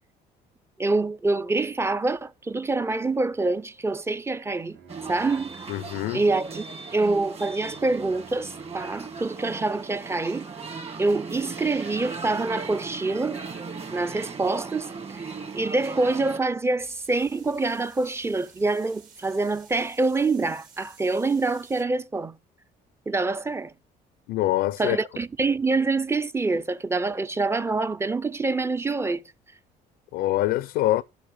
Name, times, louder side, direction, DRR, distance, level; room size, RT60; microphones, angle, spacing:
voice 1, 0.8-4.8 5.1-5.6 6.1-6.7 6.9-10.5 11.0-13.4 13.9-22.4 23.1-23.7 24.8-29.2, right 3 dB, 15° right, 0.5 m, -26 dB
Bowed string instrument, 4.7-9.6, right 5 dB, 75° right, 3.1 m, -53 dB
sound 1, 4.9-16.4, right 4 dB, 35° right, 2.1 m, -38 dB
voice 2, 5.7-6.2 24.3-25.0 30.1-31.0, left 15 dB, 80° left, 0.4 m, -24 dB
sound 2, 16.8-21.8, right 6 dB, 55° right, 2.1 m, -53 dB
12.0 x 5.9 x 5.2 m
cardioid pair, 110°, 17 cm